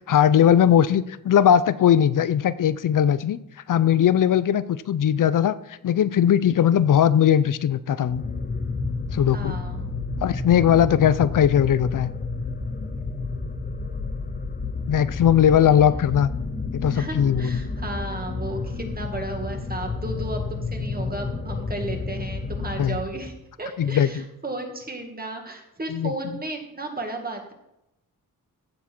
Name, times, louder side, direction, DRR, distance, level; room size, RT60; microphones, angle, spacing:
voice 1, 0.1-3.4 3.7-5.6 5.8-8.2 9.1-9.6 10.2-12.1 14.9-16.3 16.7-17.6 22.8-23.0 23.8-24.2 25.9-26.1, left 9 dB, 65° left, 16 dB, 0.6 m, -19 dB
sound 1, 8.1-23.4, left 3 dB, 25° left, 1.1 m, -31 dB
voice 2, 9.3-9.9 15.6-15.9 16.9-27.5, right 2 dB, 25° right, 3 dB, 1.9 m, -34 dB
15.5 x 7.3 x 4.5 m, 0.87 s
wide cardioid pair, 145°, 34 cm